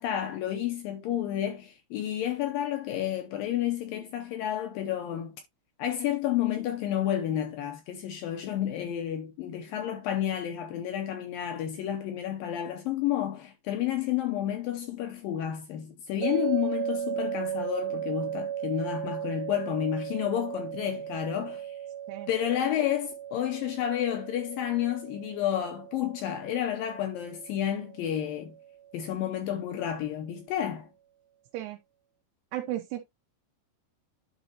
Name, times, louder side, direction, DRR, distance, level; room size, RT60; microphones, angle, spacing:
voice 1, 0.0-5.4 5.8-21.8 22.3-28.6 28.9-30.9, left 11 dB, 75° left, 2.2 m, -30 dB
sound 1, 16.2-29.3, right 10 dB, 45° right, 3.0 m, -37 dB
voice 2, 32.5-33.0, right 14 dB, 85° right, 2.8 m, -34 dB
11.0 x 4.0 x 2.8 m
omnidirectional pair, 4.7 m